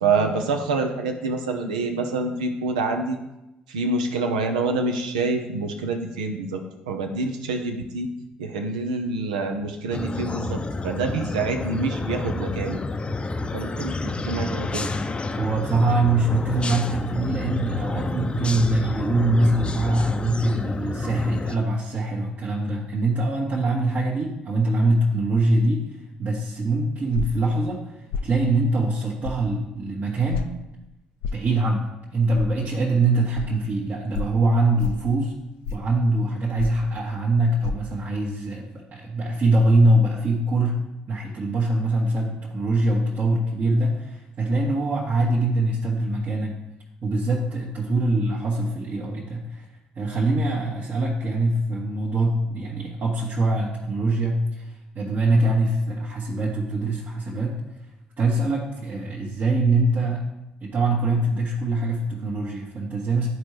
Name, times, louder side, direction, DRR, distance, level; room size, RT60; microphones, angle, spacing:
voice 1, 0.0-3.2 3.7-8.1 8.4-12.8 13.5-14.9, right 3 dB, 85° right, 5 dB, 0.7 m, -26 dB
sound 1, 9.9-21.6, left 3 dB, 25° left, 0.6 m, -29 dB
voice 2, 15.4-25.8 26.2-28.0 28.2-30.5 31.3-35.3 35.7-40.8 41.1-46.5 47.0-49.6 49.9-57.5 58.2-60.2 60.6-63.3, right 2 dB, 50° right, -5 dB, 1.3 m, -23 dB
sound 2, 27.1-27.4 28.1-28.3 29.2-29.4 30.3-30.5 31.2-31.4 32.4-32.5 33.3-33.5 34.1-34.3 34.8-35.1 35.6-35.9 36.6-36.9 37.6-37.7, left 5 dB, 75° left, 0.4 m, -29 dB
11.0 x 4.6 x 3.3 m, 0.93 s
hypercardioid pair, 50°, 4 cm